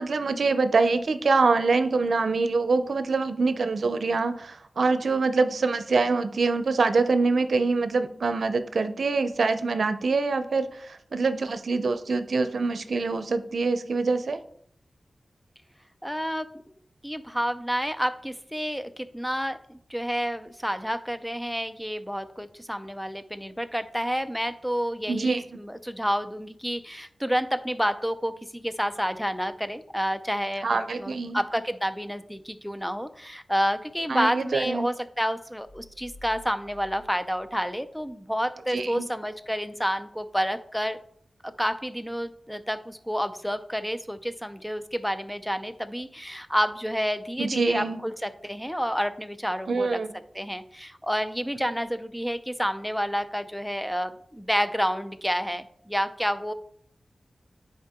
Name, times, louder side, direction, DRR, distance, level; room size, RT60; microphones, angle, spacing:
voice 1, 0.0-14.4 25.1-25.6 30.6-31.4 34.1-34.9 38.7-39.1 47.4-48.0 49.7-50.1, right 4 dB, 80° right, 10 dB, 0.6 m, -25 dB
voice 2, 16.0-16.8 17.0-41.0 41.4-50.0 50.3-56.5, equal, ahead, 10 dB, 0.5 m, -29 dB
sound 1, 35.6-38.3, left 2 dB, 30° left, 2.2 m, -52 dB
10.0 x 4.7 x 3.7 m, 0.66 s
wide cardioid pair, 105°, 0 cm